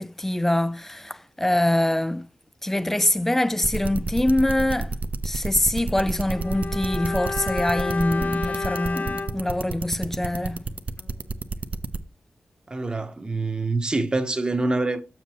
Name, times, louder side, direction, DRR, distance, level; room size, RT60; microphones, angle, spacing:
voice 1, 0.0-2.3 2.6-4.9 5.2-10.6, left 1 dB, 10° left, 0.3 m, -24 dB
sound 1, 3.6-12.0, right 3 dB, 40° right, 0.6 m, -28 dB
Bowed string instrument, 6.3-10.7 11.0-11.1, left 4 dB, 45° left, 0.8 m, -32 dB
voice 2, 12.7-15.0, right 3 dB, 25° right, 0.9 m, -25 dB
7.3 x 6.8 x 2.9 m
wide cardioid pair, 125°, 4 cm